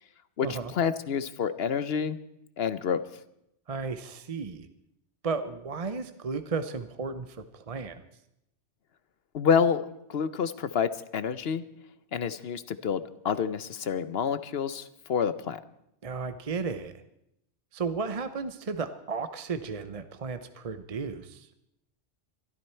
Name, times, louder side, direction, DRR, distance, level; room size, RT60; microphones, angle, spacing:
voice 1, 0.4-2.2 2.6-3.0 9.3-11.6 12.1-15.6, left 7 dB, 65° left, 14 dB, 0.9 m, -28 dB
voice 2, 3.7-4.7 5.2-8.0 16.0-16.9 17.7-21.5, right 4 dB, 35° right, 10 dB, 0.7 m, -34 dB
22.5 x 13.0 x 4.4 m, 0.81 s
omnidirectional pair, 1.2 m